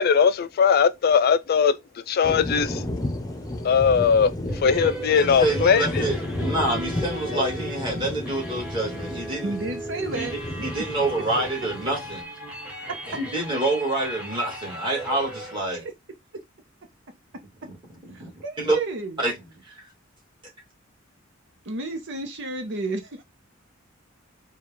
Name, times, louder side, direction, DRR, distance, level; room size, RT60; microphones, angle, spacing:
voice 1, 0.0-1.8 2.1-2.8 3.6-4.3 4.6-5.9 7.3-7.5, left 6 dB, 50° left, 0.3 m, -19 dB
sound 1, 2.2-12.2, left 1 dB, 20° left, 0.7 m, -32 dB
voice 2, 3.4-3.7 9.4-10.4 18.1-19.2 21.6-23.2, right 2 dB, 65° right, 0.8 m, -32 dB
sound 2, 4.5-15.6, right 1 dB, 5° right, 1.4 m, -37 dB
voice 3, 5.1-9.5 10.1-10.3 10.6-12.2 13.1-15.9 17.6-17.7 18.1-18.8 19.2-19.3 19.7-19.8, right 2 dB, 25° right, 2.1 m, -27 dB
4.8 x 2.4 x 3.4 m
head